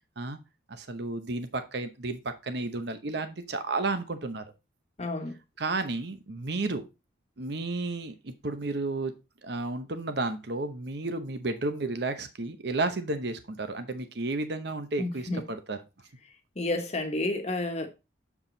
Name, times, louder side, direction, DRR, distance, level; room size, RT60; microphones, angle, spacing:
voice 1, 0.7-4.4 5.6-6.8 7.4-9.1 9.4-15.8, right 2 dB, 55° right, 0.9 m, -32 dB
voice 2, 5.0-5.3 15.0-15.4 16.6-17.9, left 2 dB, 35° left, 1.2 m, -30 dB
7.3 x 4.8 x 3.9 m
head